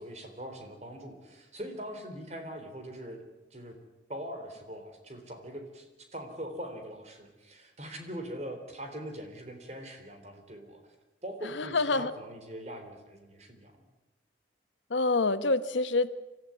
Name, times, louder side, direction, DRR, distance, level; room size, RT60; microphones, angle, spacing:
voice 1, 0.0-3.3 3.5-3.7 4.1-5.9 6.1-10.8 11.2-13.8, equal, 35° right, 5 dB, 3.7 m, -42 dB
voice 2, 11.4-12.1 14.9-16.2, left 3 dB, 90° left, 13 dB, 1.0 m, -27 dB
25.5 x 14.5 x 9.6 m, 1.1 s
head